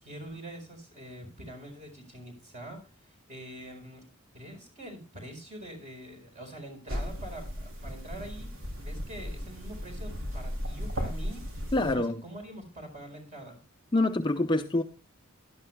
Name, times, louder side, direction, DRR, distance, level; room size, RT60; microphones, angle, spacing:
voice 1, 0.0-4.0 4.3-8.5 8.8-11.5 11.8-13.6, right 1 dB, 35° right, 4.5 m, -44 dB
sound 1, 6.9-11.9, equal, 70° right, 3.2 m, -36 dB
voice 2, 11.7-12.2 13.9-14.8, left 2 dB, 20° left, 0.6 m, -26 dB
17.0 x 12.0 x 2.2 m
head